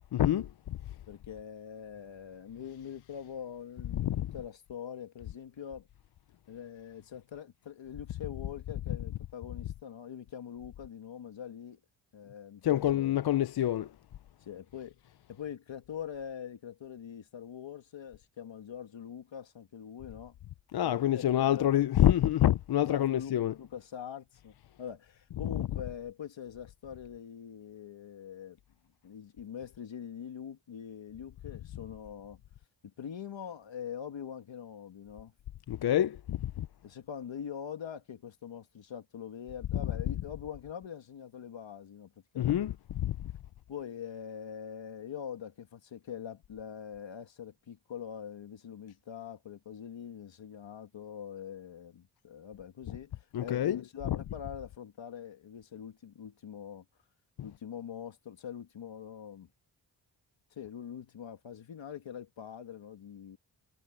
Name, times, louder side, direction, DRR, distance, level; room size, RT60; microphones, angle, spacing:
voice 1, 0.1-0.8 3.9-4.3 12.6-13.9 20.7-23.5 35.7-36.7 42.4-43.2 53.3-54.2, left 12 dB, 60° left, 0.6 m, -27 dB
voice 2, 1.1-5.9 6.5-11.8 12.1-13.2 14.4-15.0 15.3-20.3 20.8-21.7 22.8-28.6 29.0-32.4 32.8-35.3 36.8-42.7 43.7-56.8 57.4-59.5 60.5-63.4, left 8 dB, 80° left, 2.3 m, -43 dB
cardioid pair, 65°, 45 cm